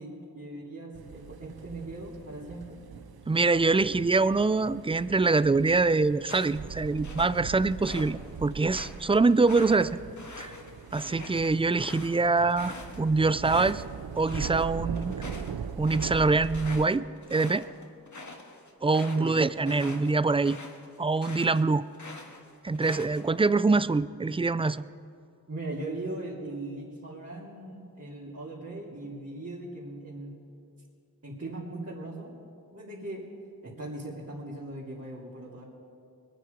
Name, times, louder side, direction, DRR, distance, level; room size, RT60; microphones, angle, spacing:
voice 1, 0.0-2.8 19.1-19.4 25.5-30.4 31.2-32.4 32.7-33.3 33.6-35.6, right 2 dB, 40° right, -7 dB, 2.9 m, -39 dB
sound 1, 1.0-16.9, right 7 dB, 80° right, 0.7 m, -40 dB
voice 2, 3.3-10.0 10.4-10.5 10.9-13.8 14.2-15.1 15.8-17.7 18.8-20.6 21.0-21.8 22.6-24.8, right 3 dB, 15° right, 17 dB, 0.4 m, -24 dB
sound 2, 6.2-8.1 8.5-13.8 14.1-14.6 14.9-21.6 21.9-23.4, left 2 dB, 50° left, 1.7 m, -44 dB
21.5 x 9.3 x 5.2 m, 2.4 s
cardioid pair, 45°, 37 cm